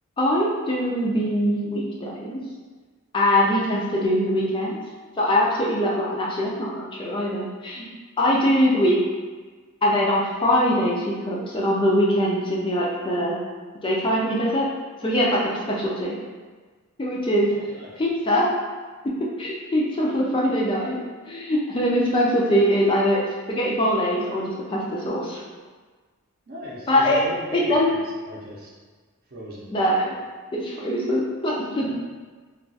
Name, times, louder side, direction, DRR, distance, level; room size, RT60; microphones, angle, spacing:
voice 1, 0.2-2.4 3.1-4.8 5.2-7.8 8.2-9.0 9.8-13.4 13.8-14.7 15.0-15.4 15.7-16.2 17.0-17.5 18.0-18.5 19.4-21.0 21.3-23.2 23.5-25.4 26.9-27.2 27.5-27.9 29.7-30.1 30.5-31.9, equal, 25° left, -4 dB, 0.3 m, -22 dB
voice 2, 17.5-17.9 26.5-28.0 28.2-28.7 29.3-29.7 31.8-31.9, equal, 45° right, -4 dB, 0.6 m, -38 dB
2.3 x 2.3 x 3.9 m, 1.4 s
head